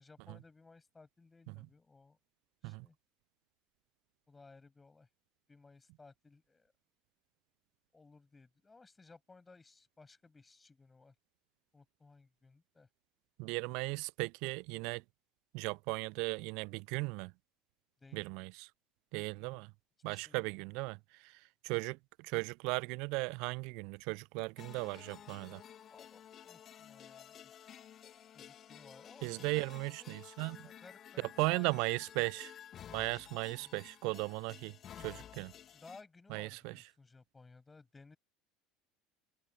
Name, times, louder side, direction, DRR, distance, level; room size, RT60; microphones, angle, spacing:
voice 1, 0.0-2.2 2.6-3.0 4.3-5.1 5.5-6.7 7.9-11.1 11.7-12.9 18.0-18.2 19.4-19.6 20.1-20.6 25.9-27.5 28.3-30.2 30.6-31.9 33.5-33.8 35.7-38.2, left 3 dB, 15° left, 6.8 m, -59 dB
voice 2, 13.4-15.0 15.5-17.3 18.1-18.7 19.1-19.7 20.0-25.6 29.2-30.7 31.4-32.5 32.9-35.5 36.3-36.8, right 29 dB, 60° right, 0.6 m, -37 dB
sound 1, 24.6-36.0, left 10 dB, 40° left, 2.7 m, -53 dB
figure-of-eight pair, 70°, 0 cm